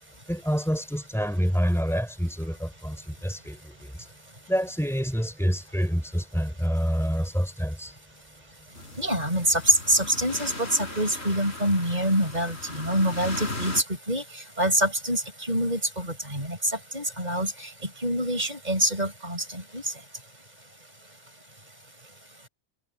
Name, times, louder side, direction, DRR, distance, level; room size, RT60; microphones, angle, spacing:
voice 1, 0.3-4.1 4.5-8.0, equal, ahead, 6.1 m, -27 dB
sound 1, 8.7-13.8, left 2 dB, 45° left, 4.8 m, -38 dB
voice 2, 9.0-14.2 14.6-17.7 18.0-19.9, right 1 dB, 30° right, 6.6 m, -26 dB
omnidirectional pair, 1.5 m